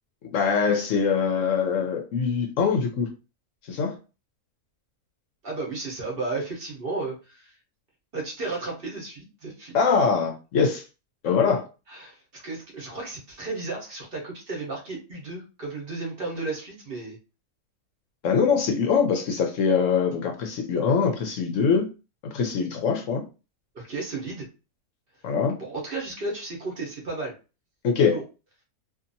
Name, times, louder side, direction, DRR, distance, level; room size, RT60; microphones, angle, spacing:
voice 1, 0.3-3.1 3.7-4.0 9.7-10.8 11.2-11.6 18.2-21.9 22.3-23.2 25.2-25.6 27.8-28.2, left 6 dB, 65° left, 0.9 m, -23 dB
voice 2, 5.4-7.5 8.1-9.8 11.9-17.2 23.7-24.5 25.6-27.4 28.0-28.2, right 3 dB, 45° right, 0.9 m, -33 dB
2.8 x 2.5 x 2.6 m
omnidirectional pair, 1.6 m